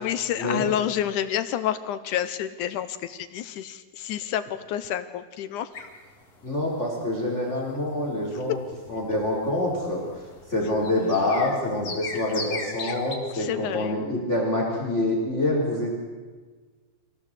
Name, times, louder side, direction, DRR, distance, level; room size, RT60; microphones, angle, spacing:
voice 1, 0.0-5.7 10.6-10.8 12.8-13.0 13.3-14.0, left 10 dB, 75° left, 11 dB, 2.1 m, -29 dB
sound 1, 5.7-13.2, left 4 dB, 50° left, 3.9 m, -39 dB
voice 2, 6.4-8.6 8.9-10.2 10.5-15.9, left 1 dB, 20° left, -1 dB, 4.2 m, -26 dB
25.0 x 17.0 x 8.2 m, 1.4 s
omnidirectional pair, 4.0 m